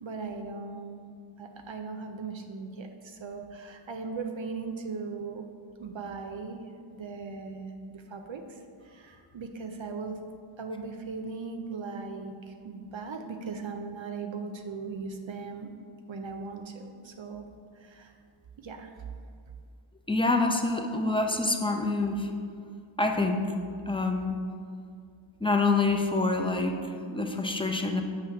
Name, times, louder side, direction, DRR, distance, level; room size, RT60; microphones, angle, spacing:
voice 1, 0.0-1.1 1.4-5.4 5.8-6.6 6.9-10.2 10.6-15.7 16.1-17.5 17.7-18.1 18.6-18.9, right 4 dB, 65° right, 5 dB, 0.6 m, -38 dB
voice 2, 20.1-22.3 23.0-23.5 23.9-24.4 25.4-28.0, left 3 dB, 10° left, 3 dB, 0.5 m, -26 dB
7.4 x 3.2 x 5.7 m, 2.3 s
wide cardioid pair, 85°, 50 cm